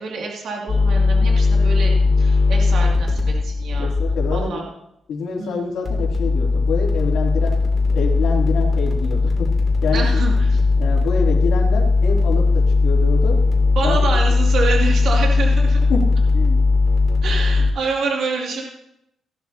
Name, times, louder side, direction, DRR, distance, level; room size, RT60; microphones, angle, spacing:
voice 1, 0.0-3.9 4.3-4.6 5.4-5.6 9.9-10.6 13.8-15.8 17.2-18.6, right 4 dB, 65° right, -1 dB, 2.5 m, -26 dB
sound 1, 0.7-4.4 5.9-17.7, left 3 dB, 25° left, 2.7 m, -18 dB
voice 2, 3.8-4.6 5.1-7.6 7.9-9.5 9.8-10.2 10.8-13.4 13.8-14.2 15.9-16.0 16.3-16.6, left 4 dB, 85° left, -1 dB, 2.9 m, -26 dB
16.5 x 12.0 x 2.8 m, 0.81 s
cardioid pair, 150°, 0 cm